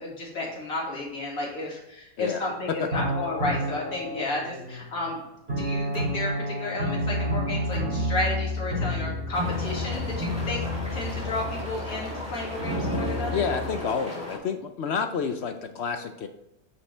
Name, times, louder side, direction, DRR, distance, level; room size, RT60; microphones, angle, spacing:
voice 1, 0.0-5.2 5.6-10.6 10.9-13.4, left 2 dB, 80° left, -4 dB, 2.6 m, -32 dB
sound 1, 2.9-4.9 5.5-13.8, left 1 dB, 45° right, 2.6 m, -30 dB
sound 2, 9.3-14.4, left 1 dB, 5° right, 2.6 m, -37 dB
voice 2, 13.3-16.3, left 6 dB, 60° left, 7 dB, 0.8 m, -29 dB
9.3 x 5.6 x 3.3 m, 0.87 s
omnidirectional pair, 1.5 m